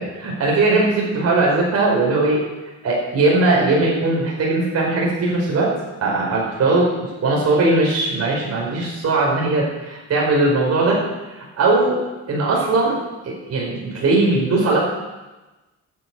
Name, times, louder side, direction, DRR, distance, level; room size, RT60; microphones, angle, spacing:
voice 1, 0.0-2.4 2.8-5.7 6.0-11.0 11.6-12.0 12.3-13.0 13.2-14.8, right 2 dB, 55° right, -3 dB, 5.1 m, -19 dB
12.5 x 9.5 x 8.0 m, 1.1 s
cardioid pair, 90°, 30 cm